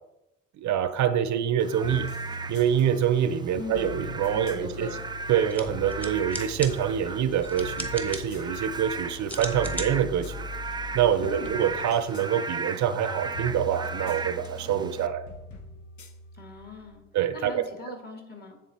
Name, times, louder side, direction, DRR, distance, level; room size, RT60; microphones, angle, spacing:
voice 1, 0.6-2.1 2.5-4.9 5.3-10.5 10.9-15.2 17.1-17.9, right 9 dB, 70° right, 11 dB, 0.6 m, -26 dB
Frog / Rain, 1.6-15.1, right 4 dB, 15° right, 0.3 m, -37 dB
sound 1, 1.8-17.1, left 3 dB, 70° left, 1.0 m, -41 dB
voice 2, 3.5-3.9 4.3-5.0 11.2-11.6 16.3-17.0 17.3-18.6, left 3 dB, 30° left, 2 dB, 1.9 m, -41 dB
sound 2, 5.4-11.5, equal, 5° left, 1.1 m, -41 dB
9.2 x 3.7 x 4.2 m, 0.93 s
cardioid pair, 90°, 30 cm